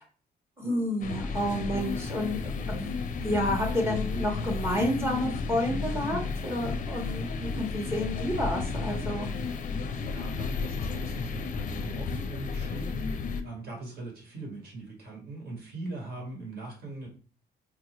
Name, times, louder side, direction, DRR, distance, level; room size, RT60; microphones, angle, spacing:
voice 1, 0.6-2.9 3.2-9.3, left 1 dB, 15° right, 0 dB, 0.9 m, -30 dB
sound 1, 1.0-13.4, left 4 dB, 50° left, 0.5 m, -33 dB
voice 2, 9.9-17.1, right 2 dB, 65° right, 0 dB, 1.7 m, -41 dB
4.5 x 2.4 x 3.0 m, 0.40 s
cardioid pair, 130°, 18 cm